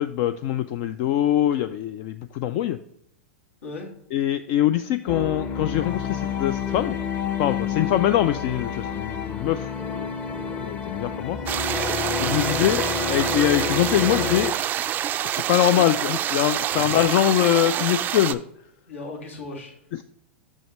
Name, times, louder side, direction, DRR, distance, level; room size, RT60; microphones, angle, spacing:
voice 1, 0.0-2.8 4.1-7.0 7.4-11.4 12.2-14.5 15.2-18.4, left 12 dB, 50° left, 11 dB, 0.3 m, -23 dB
voice 2, 3.6-3.9 12.4-12.8 16.7-17.4 18.9-19.9, left 2 dB, 80° left, -1 dB, 2.1 m, -38 dB
sound 1, 5.1-14.5, left 6 dB, 30° left, 0.9 m, -29 dB
sound 2, 11.5-18.3, right 11 dB, 30° right, 0.3 m, -27 dB
6.5 x 6.3 x 3.0 m, 0.76 s
hypercardioid pair, 105°, 7 cm